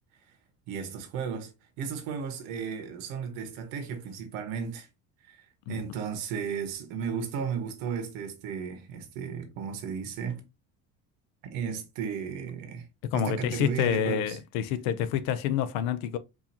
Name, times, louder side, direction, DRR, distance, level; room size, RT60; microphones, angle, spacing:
voice 1, 0.7-1.5 1.8-4.9 5.3-5.4 5.7-10.4 11.4-12.9 13.1-14.4, right 7 dB, 80° right, 1.2 m, -34 dB
voice 2, 13.0-16.2, left 9 dB, 85° left, 0.6 m, -28 dB
4.7 x 2.7 x 2.8 m
cardioid pair, 145°, 31 cm